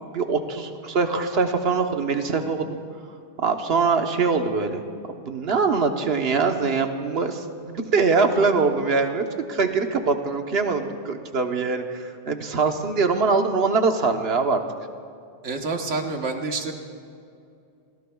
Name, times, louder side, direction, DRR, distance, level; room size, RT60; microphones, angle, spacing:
voice 1, 0.1-2.8 3.4-4.8 5.1-14.6, right 4 dB, 60° right, 5 dB, 1.3 m, -23 dB
voice 2, 15.4-16.7, right 3 dB, 80° right, 3 dB, 1.7 m, -28 dB
29.5 x 19.0 x 2.3 m, 2.5 s
omnidirectional pair, 1.2 m